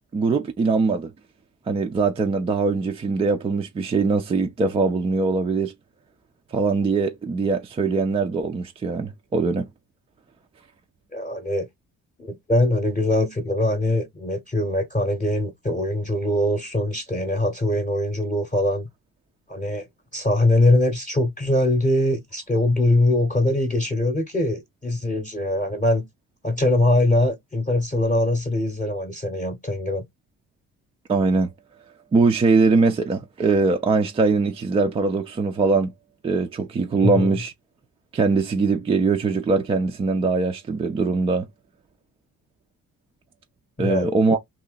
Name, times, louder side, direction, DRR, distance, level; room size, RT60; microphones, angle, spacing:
voice 1, 0.1-1.1 1.7-5.7 6.5-9.7 31.1-31.5 32.1-35.9 36.2-37.5 38.1-41.5 43.8-44.4, right 4 dB, 15° right, 0.3 m, -21 dB
voice 2, 11.1-11.7 12.2-18.9 19.5-26.1 26.4-30.0 37.0-37.3 43.8-44.1, left 1 dB, 15° left, 0.8 m, -22 dB
2.8 x 2.8 x 3.8 m
figure-of-eight pair, 45°, 45 cm